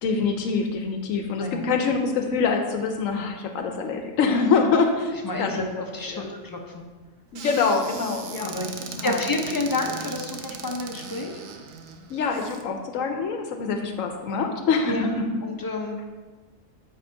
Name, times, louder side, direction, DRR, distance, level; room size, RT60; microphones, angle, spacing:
voice 1, 0.0-5.6 6.1-6.2 7.3-8.5 8.8-9.2 12.1-15.3, left 5 dB, 80° left, 5 dB, 1.0 m, -25 dB
voice 2, 1.4-1.7 5.2-5.6 5.9-6.8 8.4-8.7 9.0-11.4 14.9-15.1 15.4-16.0, left 2 dB, 20° left, 1 dB, 0.6 m, -29 dB
Squeak / Cupboard open or close, 7.3-12.6, right 6 dB, 85° right, 1.0 m, -38 dB
8.6 x 3.6 x 4.5 m, 1.3 s
omnidirectional pair, 1.4 m